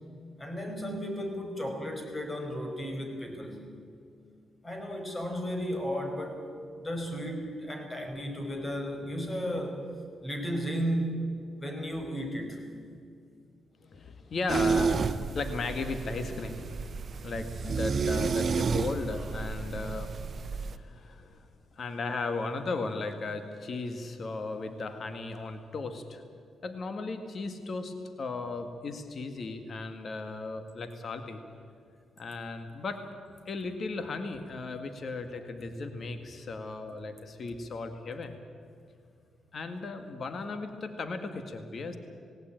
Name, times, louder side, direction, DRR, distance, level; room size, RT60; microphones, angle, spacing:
voice 1, 0.4-3.7 4.6-6.4 6.8-9.9 10.2-11.3 11.6-12.6, equal, 25° left, 4 dB, 5.2 m, -34 dB
voice 2, 13.8-16.8 17.2-21.5 21.7-26.2 26.6-31.4 32.2-33.0 33.5-38.4 39.5-42.0, left 3 dB, 55° left, 8 dB, 1.8 m, -36 dB
sound 1, 14.5-20.8, right 5 dB, 50° right, 0.9 m, -31 dB
18.5 x 18.0 x 9.0 m, 2.3 s
cardioid pair, 70°, 0 cm